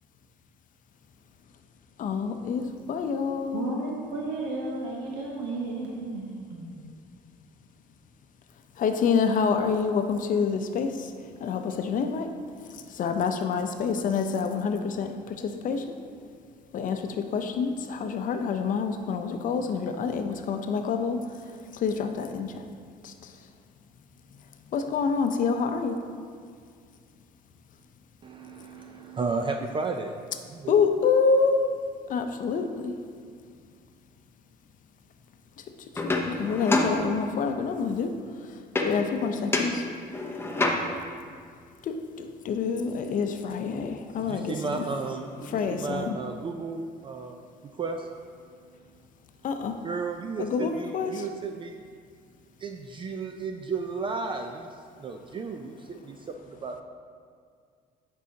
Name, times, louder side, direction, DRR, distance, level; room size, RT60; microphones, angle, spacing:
voice 1, 2.0-3.8 8.8-11.1 11.4-12.3 12.7-15.8 16.7-21.2 21.7-22.6 23.0-23.3 24.7-26.0 30.7-31.6 32.1-32.9 36.2-38.1 38.5-39.8 41.8-44.8 45.5-46.2 49.4-49.8 50.4-51.2, left 5 dB, 50° left, 7 dB, 0.6 m, -27 dB
voice 2, 3.5-6.9, right 3 dB, 85° right, -2 dB, 0.9 m, -33 dB
voice 3, 28.2-30.2 30.5-30.8 44.1-48.1 48.7-49.0 49.8-51.8 52.6-56.8, right 4 dB, 30° right, 4 dB, 0.3 m, -34 dB
sound 1, 36.0-37.6 38.8-39.2 39.5-41.2 44.4-44.5 44.8-45.8, left 2 dB, 15° left, 0.6 m, -29 dB
9.1 x 5.5 x 2.8 m, 2.1 s
cardioid pair, 110°, 17 cm